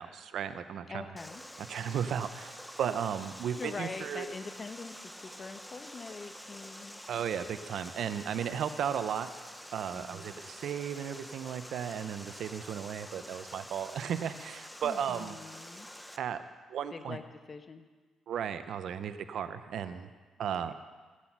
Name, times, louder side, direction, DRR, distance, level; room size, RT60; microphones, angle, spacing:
voice 1, 0.0-1.1 1.7-4.2 7.1-9.3 9.7-15.3 16.2-16.4 16.7-17.2 18.3-20.1 20.4-20.7, right 8 dB, 70° right, 11 dB, 0.7 m, -35 dB
voice 2, 0.9-1.4 3.6-5.0 5.2-7.0 9.9-10.4 14.8-15.9 16.9-17.8 20.7-20.8, left 4 dB, 35° left, 8 dB, 1.0 m, -43 dB
Water, 1.2-16.2, equal, 5° left, 0.7 m, -48 dB
14.0 x 8.3 x 6.0 m, 1.3 s
cardioid pair, 90°, 0 cm